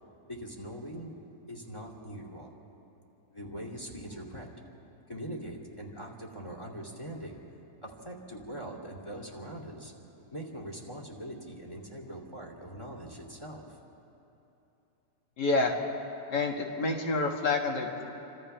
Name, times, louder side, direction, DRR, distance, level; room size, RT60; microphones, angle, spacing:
voice 1, 0.3-1.1 1.5-2.5 3.3-4.5 5.1-7.4 7.8-9.9 10.3-13.8, right 1 dB, 15° left, 1 dB, 2.7 m, -42 dB
voice 2, 15.4-15.7 16.3-18.0, left 3 dB, 80° left, 1 dB, 2.5 m, -28 dB
30.0 x 26.0 x 3.4 m, 3.0 s
omnidirectional pair, 1.8 m